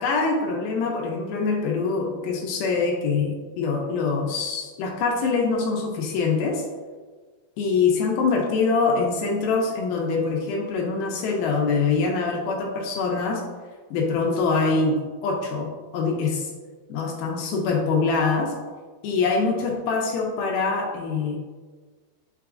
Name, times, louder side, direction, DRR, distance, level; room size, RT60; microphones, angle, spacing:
voice 1, 0.0-6.6 7.6-13.4 13.9-15.0 15.2-15.7 15.9-16.5 16.9-18.5 19.0-21.4, left 4 dB, 80° left, 1 dB, 2.4 m, -24 dB
5.9 x 3.2 x 2.4 m, 1.4 s
omnidirectional pair, 4.4 m